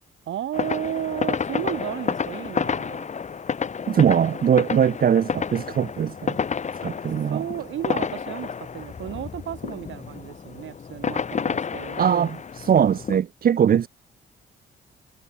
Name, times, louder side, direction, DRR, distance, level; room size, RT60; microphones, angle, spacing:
voice 1, 0.3-3.1 7.3-12.3, right 11 dB, 70° right, 4.8 m, -33 dB
sound 1, 0.5-13.2, left 6 dB, 35° left, 1.4 m, -30 dB
voice 2, 3.9-6.4 6.8-7.4 12.0-12.3 12.6-13.9, right 8 dB, 45° right, 0.9 m, -21 dB
cardioid pair, 90°, 20 cm